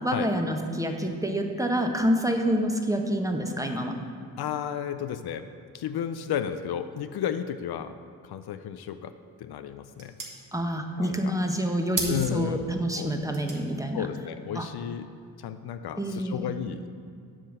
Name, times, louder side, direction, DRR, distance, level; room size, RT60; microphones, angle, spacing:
voice 1, 0.0-3.9 10.5-14.1 14.5-14.7 16.0-16.5, equal, 10° right, 3 dB, 1.1 m, -27 dB
voice 2, 4.4-5.5 5.7-7.9 8.2-9.1 9.4-10.2 11.0-11.4 12.1-12.6 13.0-13.1 13.9-15.1 15.4-16.9, left 9 dB, 70° left, 10 dB, 0.5 m, -33 dB
sound 1, 8.9-15.8, right 3 dB, 50° right, 1.8 m, -41 dB
7.7 x 5.6 x 6.5 m, 2.3 s
supercardioid pair, 45°, 40 cm